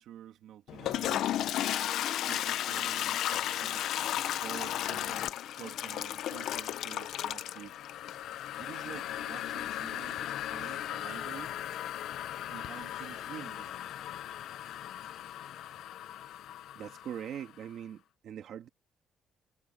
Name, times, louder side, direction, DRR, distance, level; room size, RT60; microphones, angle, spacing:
voice 1, 0.0-1.4 2.1-3.9 4.3-7.8 8.6-11.6 12.5-13.7, right 11 dB, 80° right, 2.1 m, -48 dB
Toilet flush, 0.7-17.4, left 12 dB, 75° left, 0.8 m, -35 dB
voice 2, 16.7-18.7, right 9 dB, 60° right, 2.1 m, -42 dB
cardioid pair, 170°, 0 cm